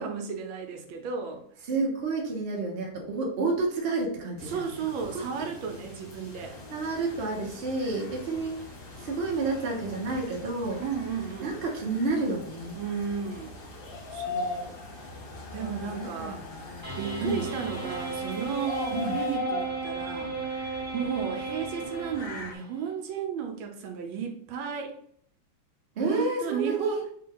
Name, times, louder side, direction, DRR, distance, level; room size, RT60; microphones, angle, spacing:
voice 1, 0.0-1.4 4.4-6.6 10.8-11.5 12.7-13.6 14.1-14.8 15.5-16.4 17.0-20.3 20.9-24.9 26.0-27.1, right 6 dB, 80° right, 4 dB, 1.4 m, -34 dB
voice 2, 1.7-4.6 6.7-8.6 9.0-10.8 11.4-12.8 15.6-16.9 17.2-17.4 18.9-19.2 26.0-27.0, right 3 dB, 45° right, 0 dB, 0.8 m, -30 dB
sound 1, 4.4-19.4, left 2 dB, 50° left, 1.5 m, -49 dB
sound 2, 6.3-22.6, left 3 dB, 70° left, 1.5 m, -41 dB
sound 3, 16.8-22.6, right 4 dB, 10° right, 0.7 m, -34 dB
3.4 x 2.8 x 3.8 m, 0.64 s
omnidirectional pair, 2.2 m